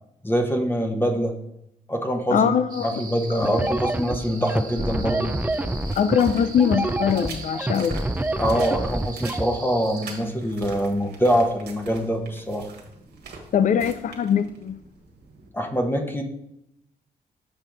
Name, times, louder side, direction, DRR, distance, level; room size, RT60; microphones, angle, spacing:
voice 1, 0.2-1.3 1.9-2.6 2.8-5.3 8.4-12.6 15.5-16.2, equal, 15° left, 3 dB, 1.1 m, -24 dB
voice 2, 2.3-3.0 3.5-3.6 5.9-8.0 13.5-14.8, left 7 dB, 50° left, 12 dB, 0.4 m, -22 dB
sound 1, 2.7-10.2, right 4 dB, 60° right, 1.5 m, -41 dB
sound 2, 3.4-9.4, right 2 dB, 10° right, 0.4 m, -26 dB
sound 3, 5.5-15.5, right 4 dB, 85° right, 1.5 m, -43 dB
6.7 x 5.6 x 3.9 m, 0.79 s
cardioid pair, 70°, 16 cm